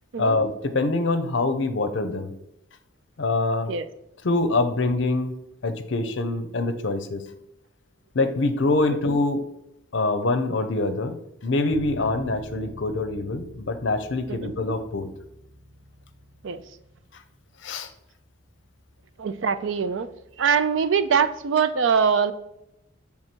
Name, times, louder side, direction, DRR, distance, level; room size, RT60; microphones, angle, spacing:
voice 1, 0.2-2.3 3.2-3.7 4.2-5.3 5.6-7.2 8.1-9.4 9.9-15.1 17.6-17.9, left 2 dB, 65° left, 9 dB, 0.6 m, -25 dB
Bass guitar, 11.7-21.5, equal, 10° right, 0.5 m, -47 dB
voice 2, 19.2-20.1 20.4-22.3, right 6 dB, 70° right, 12 dB, 0.4 m, -23 dB
6.5 x 3.5 x 4.4 m, 0.87 s
head